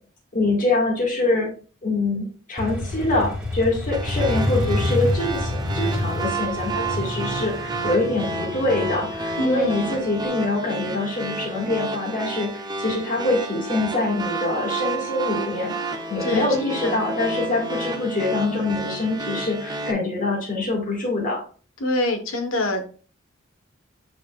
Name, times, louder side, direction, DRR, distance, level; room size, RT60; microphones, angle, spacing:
voice 1, 0.3-1.5 1.8-21.4, left 2 dB, 40° left, -2 dB, 1.9 m, -24 dB
Motorcycle, 2.6-10.2, left 1 dB, 5° right, 1.6 m, -28 dB
Progressive Synt line, 3.9-19.9, right 3 dB, 20° right, 0.8 m, -31 dB
voice 2, 9.4-10.1 16.2-16.6 16.8-17.0 21.8-22.8, left 2 dB, 75° left, 6 dB, 1.2 m, -25 dB
7.9 x 5.0 x 2.4 m, 0.39 s
head